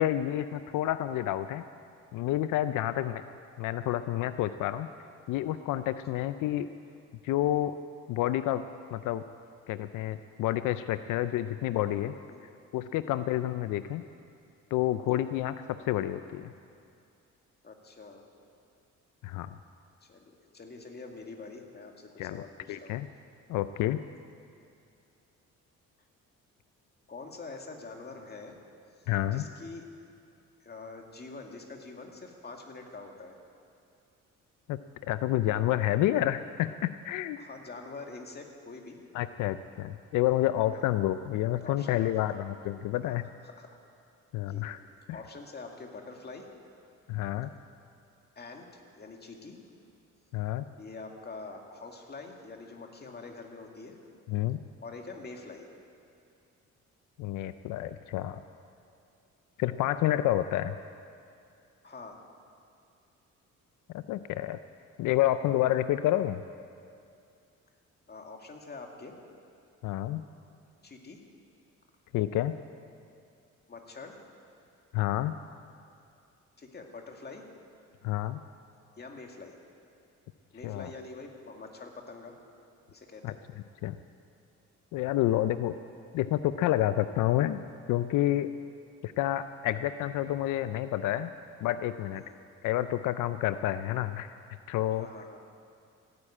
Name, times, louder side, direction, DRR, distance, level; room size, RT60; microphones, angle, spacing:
voice 1, 0.0-1.6 2.1-3.2 3.6-4.9 5.3-6.7 7.2-7.7 8.1-8.6 8.9-9.2 9.7-12.2 12.7-14.0 14.7-16.5 19.2-19.6 22.2-22.4 22.7-23.1 23.5-24.0 29.1-29.5 34.7-37.4 39.1-43.3 44.3-44.8 47.1-47.5 50.3-50.7 54.3-54.6 57.2-58.4 59.6-60.8 63.9-64.6 65.0-66.4 69.8-70.2 72.1-72.5 74.9-75.3 78.0-78.4 80.6-80.9 83.2-83.3 83.8-84.0 84.9-85.7 86.1-87.6 87.9-88.5 89.0-91.3 91.6-92.2 92.6-94.3 94.7-95.1, left 13 dB, 90° left, 12 dB, 0.5 m, -29 dB
voice 2, 17.6-18.3 20.0-23.0 27.1-28.6 29.0-29.8 30.6-33.4 37.4-39.0 40.7-40.8 41.6-42.4 43.0-43.7 44.5-44.6 45.1-46.5 48.4-49.6 50.7-54.0 54.8-55.7 61.8-62.2 68.1-69.2 70.8-71.2 73.7-74.2 76.6-77.5 79.0-79.6 80.5-82.4 82.9-83.4 92.1-92.4 94.9-95.4, left 3 dB, 35° left, 2 dB, 2.3 m, -45 dB
16.5 x 9.8 x 8.7 m, 2.5 s
cardioid pair, 90°, 30 cm